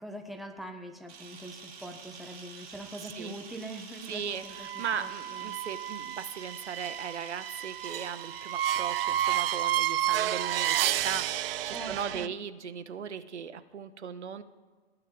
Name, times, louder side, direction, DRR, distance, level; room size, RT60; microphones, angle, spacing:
voice 1, 0.0-5.6 11.7-12.3, right 1 dB, ahead, 4 dB, 1.2 m, -43 dB
Camera, 1.1-11.0, right 5 dB, 25° right, 2.9 m, -48 dB
voice 2, 3.0-3.3 4.1-14.4, right 7 dB, 85° right, 11 dB, 1.4 m, -38 dB
sound 1, 4.6-12.3, right 12 dB, 55° right, 0.7 m, -31 dB
19.0 x 6.7 x 9.1 m, 1.5 s
hypercardioid pair, 140°, 34 cm